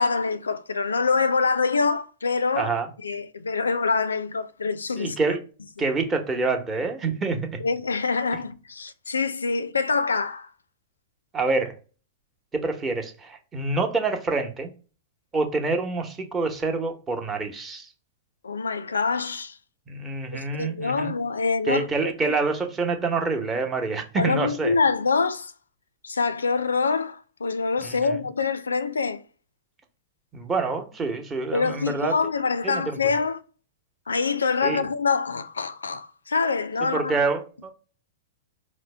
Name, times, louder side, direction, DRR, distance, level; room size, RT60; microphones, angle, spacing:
voice 1, 0.0-2.7 3.0-5.2 7.6-10.5 18.4-19.6 20.3-22.3 24.2-25.5 26.0-29.2 31.5-33.4 34.1-37.2, left 4 dB, 85° left, 0.3 m, -25 dB
voice 2, 2.6-2.9 5.0-5.4 5.8-7.5 11.3-11.8 12.5-14.7 15.3-17.9 19.9-21.1 21.7-24.8 27.8-28.2 30.3-32.1 32.6-33.0 34.6-34.8 36.8-37.7, right 3 dB, 20° right, 0.9 m, -27 dB
4.4 x 2.0 x 3.3 m
hypercardioid pair, 110°, 0 cm